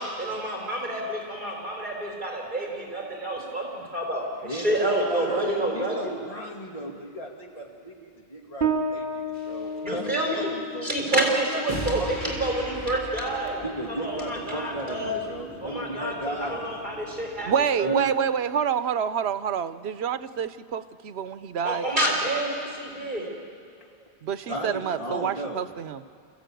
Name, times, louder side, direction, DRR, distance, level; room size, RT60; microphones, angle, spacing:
voice 1, 0.0-3.7 3.9-6.1 9.8-10.5 10.8-13.6 14.0-15.2 15.6-17.5 17.8-18.0 21.6-23.3, right 1 dB, 50° right, 0 dB, 3.8 m, -28 dB
voice 2, 4.4-12.5 13.6-16.7 17.8-18.0 24.0-24.1 24.5-25.7, equal, 35° left, -1 dB, 2.9 m, -36 dB
Bass guitar, 8.6-15.8, right 2 dB, 65° right, 2.9 m, -34 dB
sound 1, 9.3-9.7 11.7-17.7, equal, 15° right, 5.9 m, -39 dB
voice 3, 17.5-21.9 24.2-26.0, right 7 dB, 85° right, 12 dB, 1.0 m, -27 dB
26.5 x 15.0 x 9.1 m, 2.3 s
omnidirectional pair, 1.1 m